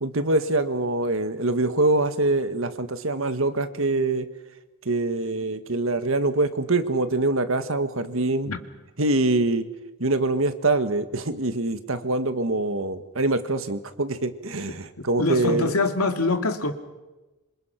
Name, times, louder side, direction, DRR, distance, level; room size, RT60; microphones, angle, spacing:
voice 1, 0.0-4.3 4.9-8.5 9.0-9.7 10.0-15.7, right 2 dB, 65° right, 10 dB, 1.7 m, -24 dB
voice 2, 15.2-16.7, left 3 dB, 90° left, 6 dB, 2.4 m, -24 dB
27.0 x 26.5 x 6.0 m, 1.1 s
head